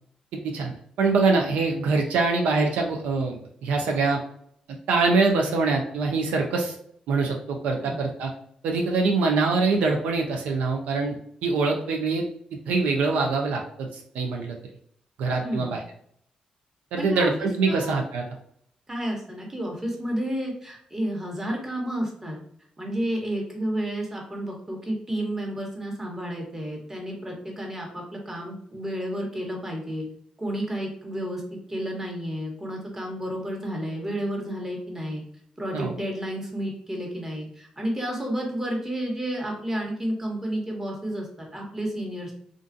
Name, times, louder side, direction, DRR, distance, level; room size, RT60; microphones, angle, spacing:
voice 1, 1.0-4.2 4.9-6.7 7.1-8.3 8.6-11.2 11.4-12.3 12.7-13.9 14.1-14.6 15.2-15.8 16.9-18.2 35.7-35.9, right 4 dB, 85° right, 1 dB, 0.3 m, -24 dB
voice 2, 15.4-15.8 17.0-18.0 18.9-22.4 22.8-30.1 30.4-31.4 31.7-35.2 35.6-42.3, equal, 20° right, -1 dB, 1.0 m, -31 dB
2.4 x 2.3 x 2.5 m, 0.66 s
supercardioid pair, 60°, 2 cm